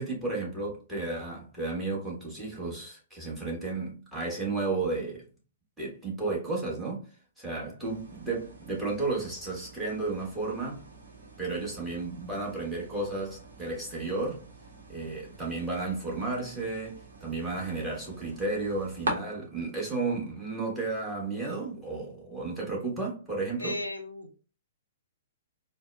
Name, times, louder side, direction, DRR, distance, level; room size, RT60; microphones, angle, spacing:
voice 1, 0.0-5.2 5.8-7.1 7.4-10.8 11.4-14.4 14.9-23.8, right 3 dB, 10° right, 1.3 m, -33 dB
sound 1, 7.8-19.1, right 2 dB, 70° right, 0.8 m, -44 dB
voice 2, 23.6-24.4, left 2 dB, 90° left, 0.4 m, -35 dB
4.4 x 2.0 x 2.2 m
figure-of-eight pair, 115°, 0 cm